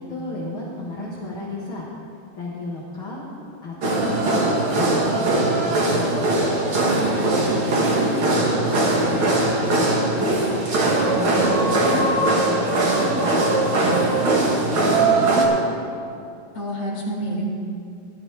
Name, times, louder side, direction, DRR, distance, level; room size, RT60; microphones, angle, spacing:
voice 1, 0.0-1.9 2.3-3.3 3.6-6.1 7.0-10.7 11.0-13.7 14.0-15.5, left 2 dB, 50° left, -5 dB, 1.5 m, -33 dB
sound 1, 3.8-15.4, right 2 dB, 60° right, 1.4 m, -20 dB
voice 2, 7.3-7.8 16.5-17.4, equal, 20° left, -7 dB, 4.1 m, -29 dB
18.5 x 12.0 x 3.4 m, 2.5 s
omnidirectional pair, 4.6 m